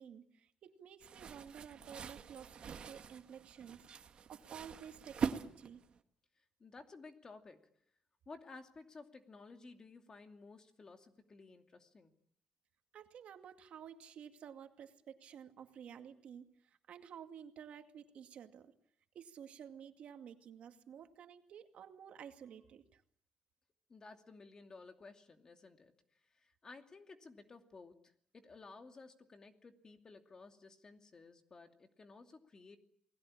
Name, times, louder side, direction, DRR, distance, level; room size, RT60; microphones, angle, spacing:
voice 1, 0.0-5.8 12.9-18.7 19.1-23.0, right 8 dB, 70° right, 6 dB, 2.3 m, -52 dB
sound 1, 1.0-6.0, right 6 dB, 50° right, 1.8 m, -43 dB
voice 2, 6.6-7.6 8.3-12.1 23.9-25.9 26.3-27.9 28.3-32.8, left 3 dB, 30° left, 6 dB, 2.6 m, -55 dB
29.0 x 20.0 x 8.7 m, 0.66 s
cardioid pair, 140°, 2 cm